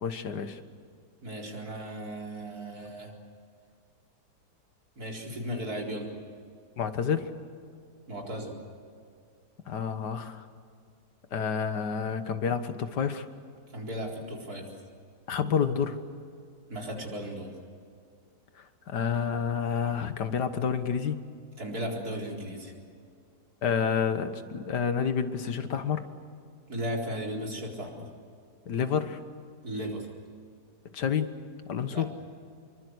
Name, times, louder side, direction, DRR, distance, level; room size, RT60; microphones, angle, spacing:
voice 1, 0.0-0.6 6.8-7.3 9.7-10.5 11.3-13.3 15.3-16.0 18.6-21.2 23.6-26.0 28.7-29.2 30.9-31.3 31.7-32.1, left 7 dB, 85° left, 9 dB, 2.0 m, -29 dB
voice 2, 1.2-3.1 5.0-6.1 8.1-8.5 13.7-14.7 16.7-17.5 21.6-22.7 26.7-28.1 29.6-30.1 31.9-32.1, equal, 60° right, -1 dB, 4.8 m, -36 dB
26.0 x 23.5 x 8.1 m, 2.3 s
omnidirectional pair, 1.8 m